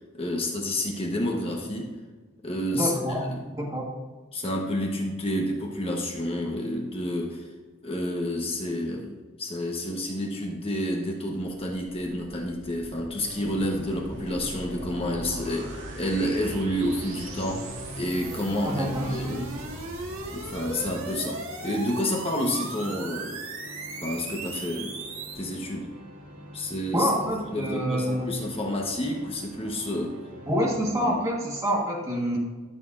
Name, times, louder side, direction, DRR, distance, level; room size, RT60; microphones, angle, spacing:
voice 1, 0.1-1.9 2.4-3.4 4.3-7.5 7.8-19.5 20.3-23.4 24.0-25.0 25.3-25.9 26.5-27.1 27.5-30.2 31.1-31.2, left 1 dB, 25° left, 0 dB, 1.1 m, -29 dB
voice 2, 2.7-4.0 18.6-19.4 26.9-28.3 30.5-32.4, equal, 15° right, -3 dB, 1.5 m, -27 dB
sound 1, 11.9-25.3, right 2 dB, 70° right, 1.6 m, -39 dB
sound 2, 13.2-30.9, equal, 90° right, 2.0 m, -47 dB
sound 3, 13.4-21.1, equal, 55° right, 2.4 m, -44 dB
13.0 x 6.8 x 2.6 m, 1.3 s
head